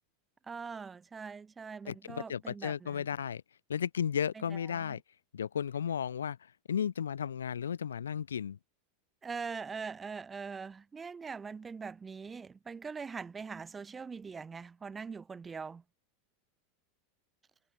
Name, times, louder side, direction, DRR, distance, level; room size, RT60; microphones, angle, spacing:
voice 1, 0.4-3.1 4.4-4.5 4.7-5.0 9.2-15.8, right 5 dB, 20° right, 0.8 m, -42 dB
voice 2, 1.9-3.4 3.7-5.0 5.3-8.6, left 8 dB, 90° left, 1.8 m, -34 dB
hypercardioid pair, 95°, 0 cm